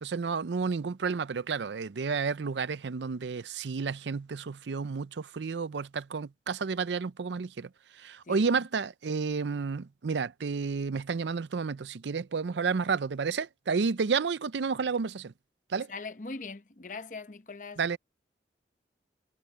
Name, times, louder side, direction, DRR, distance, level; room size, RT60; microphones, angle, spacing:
voice 1, 0.0-7.7 8.0-15.3 15.7-15.9 17.8-18.0, right 5 dB, 80° right, 0.5 m, -31 dB
voice 2, 8.2-8.7 15.9-18.0, left 3 dB, 45° left, 0.9 m, -41 dB
head